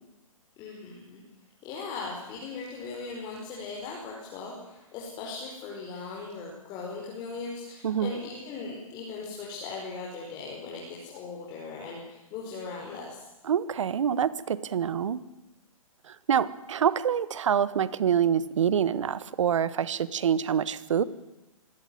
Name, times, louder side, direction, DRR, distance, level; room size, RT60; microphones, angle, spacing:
voice 1, 0.6-1.2 1.6-13.3, left 4 dB, 25° left, -2 dB, 5.0 m, -39 dB
voice 2, 13.4-15.2 16.0-21.0, right 8 dB, 60° right, 17 dB, 1.4 m, -26 dB
25.5 x 16.5 x 9.5 m, 0.98 s
hypercardioid pair, 135°, 18 cm